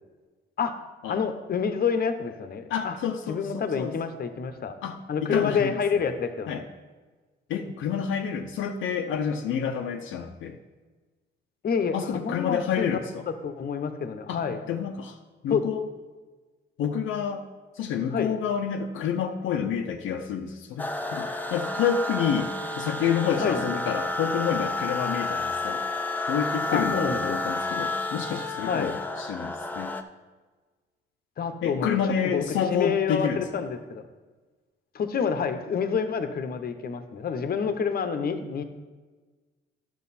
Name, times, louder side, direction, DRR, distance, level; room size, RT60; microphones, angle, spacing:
voice 1, 1.1-3.0 3.3-4.7 5.1-6.7 11.6-12.9 13.3-14.6 15.5-15.6 18.1-18.3 23.4-23.6 26.7-27.4 28.6-28.9 31.4-34.0 34.9-38.6, left 6 dB, 50° left, 8 dB, 0.9 m, -28 dB
voice 2, 2.7-3.9 4.8-5.8 6.5-6.6 7.5-10.6 11.9-13.2 14.3-15.2 15.4-15.8 16.8-17.4 17.7-25.8 26.3-28.9 29.2-29.9 31.6-33.6, left 7 dB, 80° left, 3 dB, 0.7 m, -29 dB
sound 1, 20.8-30.0, left 2 dB, 10° left, 0.7 m, -30 dB
10.5 x 6.5 x 4.2 m, 1.3 s
cardioid pair, 90°, 20 cm